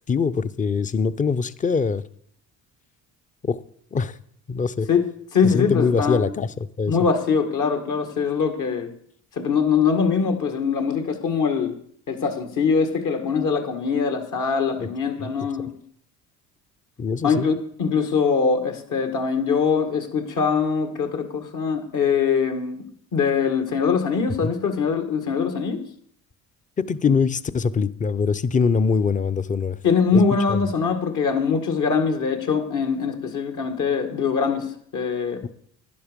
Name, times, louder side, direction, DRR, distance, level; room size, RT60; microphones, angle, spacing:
voice 1, 0.1-2.0 3.4-3.6 3.9-4.2 4.5-4.9 5.4-7.0 14.8-14.9 15.2-15.3 17.0-17.5 24.4-24.5 26.9-29.8 30.1-30.2 30.5-30.6 35.4-35.5, left 5 dB, 20° left, 0.6 m, -23 dB
voice 2, 4.9-6.3 6.9-8.9 9.4-11.8 12.1-15.8 17.2-22.8 23.1-25.8 29.8-35.5, left 5 dB, 60° left, 2.0 m, -22 dB
12.0 x 10.0 x 5.2 m
supercardioid pair, 80°, 35 cm